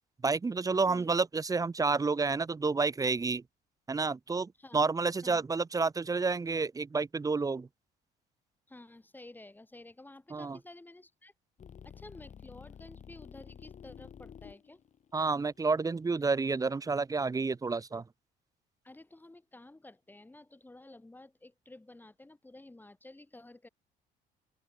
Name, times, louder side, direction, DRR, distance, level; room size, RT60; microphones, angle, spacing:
voice 1, 0.2-3.4 3.9-7.7 10.3-10.6 15.1-18.0, right 4 dB, 20° right, 1.1 m, -30 dB
voice 2, 8.7-11.3 11.8-14.8 18.8-23.7, left 2 dB, 10° left, 4.3 m, -52 dB
sound 1, 11.6-16.7, left 8 dB, 45° left, 6.7 m, -51 dB
open air
cardioid pair, 110°, 17 cm